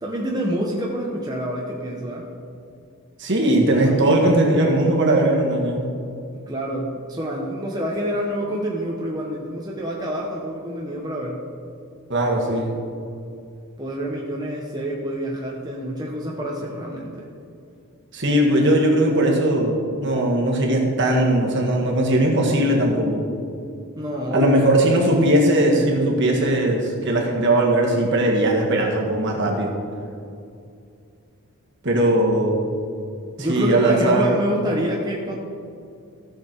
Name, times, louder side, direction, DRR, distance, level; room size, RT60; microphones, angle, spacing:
voice 1, 0.0-2.3 3.8-4.1 6.3-11.4 13.8-17.2 24.0-24.8 33.4-35.4, equal, 20° right, -3 dB, 0.9 m, -27 dB
voice 2, 3.2-5.8 12.1-12.7 18.1-23.3 24.3-29.8 31.8-32.6 33.4-34.4, right 1 dB, 55° right, -1 dB, 1.8 m, -19 dB
15.0 x 6.5 x 4.5 m, 2.5 s
head